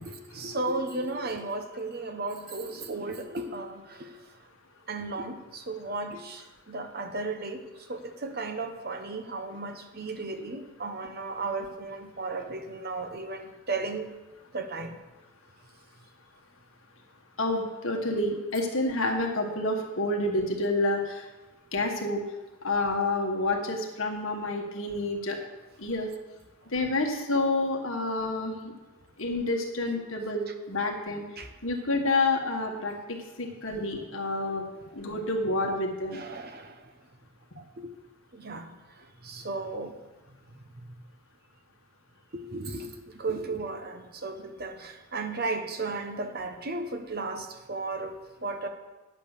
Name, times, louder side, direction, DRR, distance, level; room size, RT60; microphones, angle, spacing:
voice 1, 0.0-4.1 4.9-7.6 7.9-14.2 14.5-15.0 30.5-30.6 31.4-31.5 36.1-36.9 37.6-37.9 38.3-40.0 40.8-40.9 42.3-48.1 48.4-48.7, right 3 dB, 45° right, 6 dB, 1.0 m, -35 dB
voice 2, 17.4-21.3 21.7-22.2 22.6-25.4 25.8-26.1 26.7-28.7 29.2-31.2 31.6-34.7 34.9-36.2, left 2 dB, 60° left, 2 dB, 1.7 m, -28 dB
9.9 x 8.2 x 6.8 m, 1.1 s
head